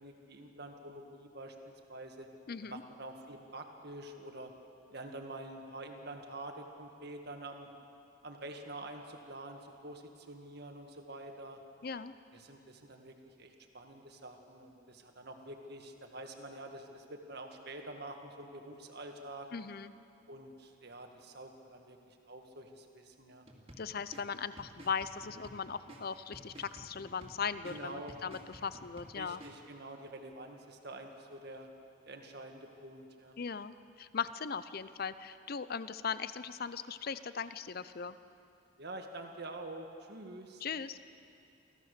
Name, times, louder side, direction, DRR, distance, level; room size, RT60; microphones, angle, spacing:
voice 1, 0.0-2.3 2.6-4.5 4.9-7.7 8.2-11.6 12.3-19.5 20.3-23.4 27.7-28.1 29.1-31.7 32.0-33.4 38.8-40.6, right 2 dB, 50° right, 4 dB, 1.7 m, -47 dB
voice 2, 2.5-2.8 11.8-12.1 19.5-19.9 23.8-29.4 33.4-38.2 40.6-41.0, left 6 dB, 45° left, 14 dB, 0.5 m, -39 dB
sound 1, 23.5-29.5, equal, 30° right, 2.4 m, -54 dB
25.5 x 15.5 x 6.7 m, 2.7 s
head